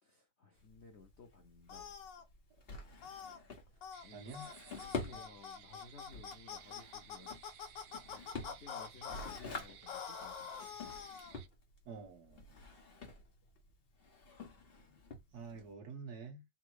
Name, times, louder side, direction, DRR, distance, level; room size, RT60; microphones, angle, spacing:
voice 1, 0.0-2.0 3.7-4.4 4.8-10.6 15.5-15.6, left 3 dB, 85° left, 0.6 m, -58 dB
Drawer open or close, 0.5-15.7, left 3 dB, 35° left, 1.0 m, -48 dB
sound 1, 1.7-2.2 3.0-3.4 3.8-4.0 4.3-4.5 4.8-9.4 9.9-11.3, left 7 dB, 65° left, 1.4 m, -46 dB
sound 2, 3.9-11.5, right 10 dB, 70° right, 1.0 m, -59 dB
voice 2, 4.1-4.6 5.1-5.3 11.8-12.8 14.7-15.0 15.3-16.4, right 4 dB, 50° right, 1.7 m, -49 dB
4.2 x 2.5 x 4.6 m
omnidirectional pair, 2.4 m